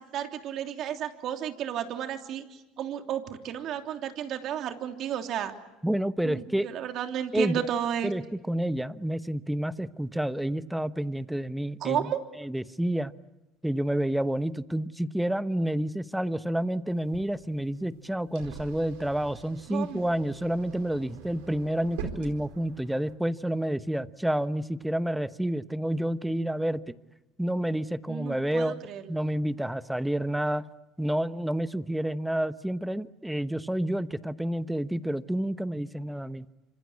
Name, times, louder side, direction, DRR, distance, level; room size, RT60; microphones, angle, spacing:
voice 1, 0.0-5.5 6.2-8.1 11.8-12.2 19.7-20.1 28.1-29.1, right 10 dB, 60° right, 5 dB, 3.1 m, -32 dB
voice 2, 5.8-6.7 7.3-7.6 8.0-12.1 12.4-13.1 13.6-26.8 27.4-28.8 29.1-30.6 31.0-36.5, right 1 dB, 5° right, 13 dB, 1.1 m, -29 dB
sound 1, 16.9-23.1, right 6 dB, 90° right, 4.5 m, -44 dB
27.0 x 26.0 x 8.6 m, 0.96 s
supercardioid pair, 95°, 0 cm